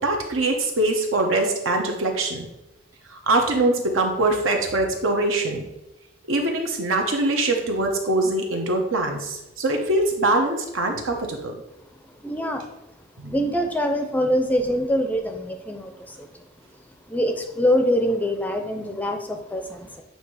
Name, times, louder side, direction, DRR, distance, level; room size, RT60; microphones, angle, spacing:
voice 1, 0.0-2.5 3.1-5.6 6.3-11.5 13.2-13.3, right 2 dB, 80° right, 2 dB, 1.0 m, -23 dB
voice 2, 12.2-12.6 13.3-16.4 17.1-20.0, equal, 10° left, 5 dB, 0.4 m, -24 dB
8.1 x 2.7 x 4.7 m, 0.94 s
head